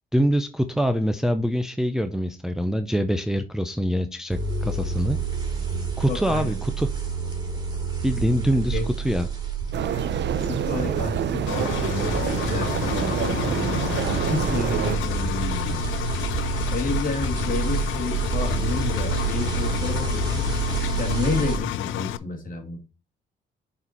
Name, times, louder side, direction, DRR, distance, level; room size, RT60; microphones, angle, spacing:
voice 1, 0.1-5.2 6.0-6.9 8.0-8.8 9.0-9.3, equal, ahead, 8 dB, 0.5 m, -24 dB
sound 1, 4.3-21.6, right 5 dB, 20° right, 2.8 m, -29 dB
voice 2, 6.1-6.5 8.6-8.8 9.9-10.0 10.4-13.9 14.3-15.8 16.7-20.4 21.0-22.8, left 4 dB, 45° left, 2 dB, 2.5 m, -30 dB
sound 2, 9.7-15.0, right 9 dB, 65° right, 0.8 m, -26 dB
Engine, 11.5-22.2, left 14 dB, 80° left, 0.4 m, -31 dB
6.7 x 4.4 x 4.3 m, 0.31 s
cardioid pair, 90°, 20 cm